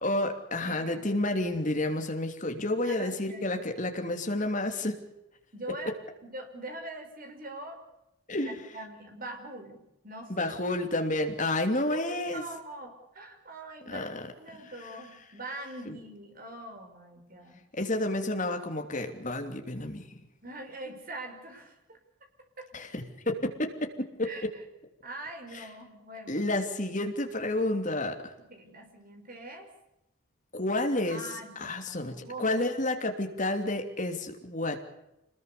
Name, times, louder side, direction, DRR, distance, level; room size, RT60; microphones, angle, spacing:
voice 1, 0.0-5.0 8.3-8.6 10.3-12.4 13.9-14.2 15.9-16.0 17.7-20.0 22.7-23.7 24.0-24.3 25.5-25.6 26.3-28.3 30.5-31.2 31.6-34.8, left 1 dB, 35° left, 4 dB, 3.0 m, -30 dB
voice 2, 0.6-1.3 2.8-3.6 5.5-5.9 6.2-7.8 8.4-10.5 11.9-17.6 20.4-22.0 22.6-22.7 24.2-24.6 25.0-26.4 28.5-29.7 31.1-32.6, right 2 dB, 40° right, 4 dB, 5.4 m, -43 dB
27.0 x 20.5 x 6.9 m, 0.88 s
head